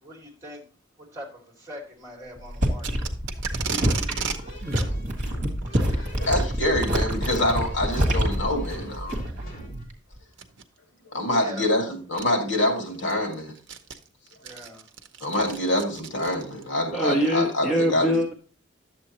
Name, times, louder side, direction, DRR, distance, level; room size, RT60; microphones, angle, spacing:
voice 1, 0.0-0.6 1.1-3.0 5.1-5.2 11.4-11.7 14.4-14.8, equal, 15° right, -2 dB, 2.5 m, -42 dB
sound 1, 2.4-9.5 9.8-10.2, equal, 35° right, 1.7 m, -26 dB
Packing tape duct tape, 2.8-4.4 4.7-4.9 5.6-5.9 7.0-7.3 8.0-8.1 8.7-8.8 10.3-10.6 11.7-11.8 12.2-12.3 12.8-16.7, right 6 dB, 60° right, 0.7 m, -34 dB
sound 2, 3.7-9.9, right 1 dB, 40° left, 2.6 m, -38 dB
voice 2, 5.9-9.3 11.1-13.5 15.2-18.1, left 1 dB, 65° left, 3 dB, 2.2 m, -26 dB
voice 3, 16.9-18.3, equal, ahead, -2 dB, 0.7 m, -23 dB
10.5 x 7.5 x 3.0 m, 0.37 s
head